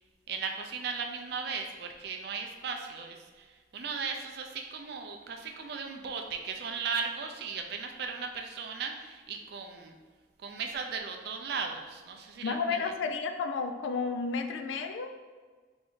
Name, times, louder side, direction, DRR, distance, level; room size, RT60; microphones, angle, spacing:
voice 1, 0.3-3.5 3.7-10.0 10.4-12.9, right 5 dB, 60° right, 3 dB, 0.4 m, -37 dB
voice 2, 12.4-15.2, left 5 dB, 90° left, 7 dB, 0.3 m, -32 dB
3.4 x 2.6 x 3.6 m, 1.4 s
head